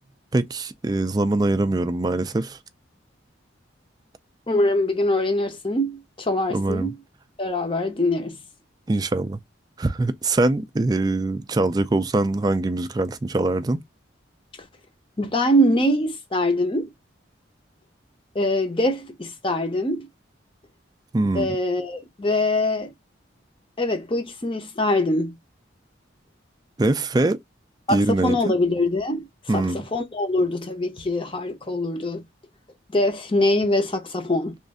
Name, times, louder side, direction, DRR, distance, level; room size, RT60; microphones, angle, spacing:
voice 1, 0.3-2.6 6.5-6.9 8.9-9.4 9.8-13.8 21.1-21.6 26.8-27.4 27.9-28.5 29.5-29.8, right 2 dB, 20° right, 0.3 m, -23 dB
voice 2, 4.5-6.9 7.4-8.4 15.2-16.9 18.3-20.1 21.3-22.9 23.8-25.4 27.9-29.2 29.5-32.2 32.9-34.6, left 1 dB, 25° left, 0.7 m, -23 dB
3.1 x 2.5 x 3.6 m
head